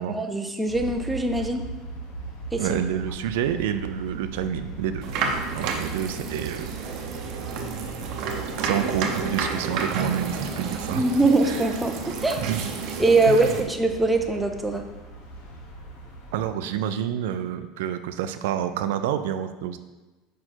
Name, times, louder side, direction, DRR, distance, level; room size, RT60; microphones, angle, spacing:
voice 1, 0.1-1.6 2.5-2.8 10.9-12.4 13.0-14.8, right 2 dB, 5° right, 4 dB, 0.5 m, -22 dB
sound 1, 0.7-16.5, right 3 dB, 70° left, 1.2 m, -39 dB
voice 2, 2.6-5.0 5.5-6.8 8.6-11.0 12.4-12.6 13.3-13.6 16.3-19.8, right 10 dB, 85° right, 10 dB, 0.4 m, -28 dB
sound 2, 5.0-13.6, right 5 dB, 55° right, 0.7 m, -31 dB
5.1 x 4.4 x 4.4 m, 1.2 s
cardioid pair, 155°, 0 cm